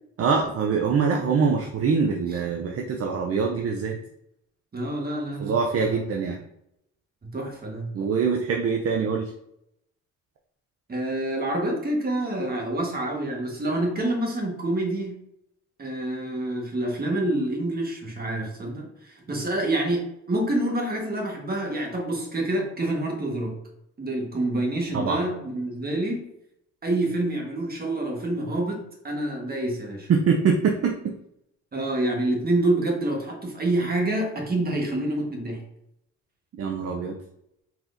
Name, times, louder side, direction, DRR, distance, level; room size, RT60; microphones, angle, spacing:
voice 1, 0.2-4.0 5.4-6.4 7.9-9.3 24.9-25.2 30.1-30.9 36.6-37.2, right 5 dB, 50° right, 2 dB, 0.6 m, -24 dB
voice 2, 4.7-6.1 7.2-7.9 10.9-15.2 15.8-23.5 24.0-26.3 26.8-30.1 31.7-35.6, right 1 dB, 30° right, 1 dB, 1.4 m, -27 dB
4.3 x 4.1 x 2.6 m, 0.78 s
cardioid pair, 90°, 30 cm